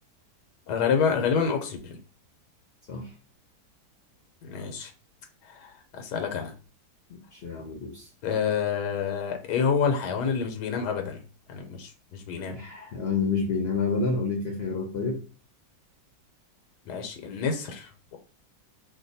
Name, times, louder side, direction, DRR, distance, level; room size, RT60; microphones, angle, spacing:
voice 1, 0.7-2.0 4.4-4.9 5.4-6.5 8.2-11.2 11.5-12.6 16.9-18.2, left 6 dB, 85° left, 5 dB, 1.3 m, -28 dB
voice 2, 7.1-8.1 12.5-15.2, left 4 dB, 60° left, 1 dB, 0.6 m, -29 dB
2.9 x 2.1 x 4.0 m, 0.35 s
omnidirectional pair, 1.7 m